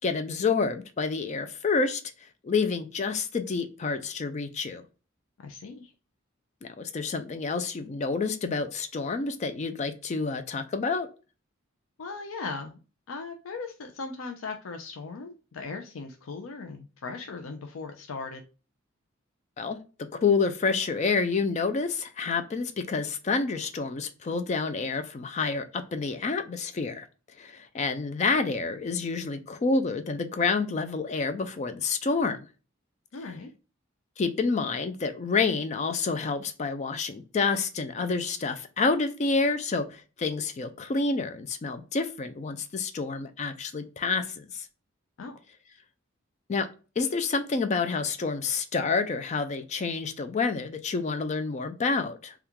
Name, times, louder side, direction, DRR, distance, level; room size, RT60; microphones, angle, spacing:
voice 1, 0.0-2.0 2.4-4.8 6.6-11.1 19.6-19.8 20.1-27.1 27.4-32.4 34.2-44.7 46.5-46.7 47.0-52.3, left 4 dB, 35° left, 0.4 m, -28 dB
voice 2, 5.4-5.9 12.0-12.8 13.1-18.4 33.1-33.5 45.2-45.3, left 4 dB, 90° left, 0.5 m, -38 dB
3.5 x 2.3 x 2.8 m
head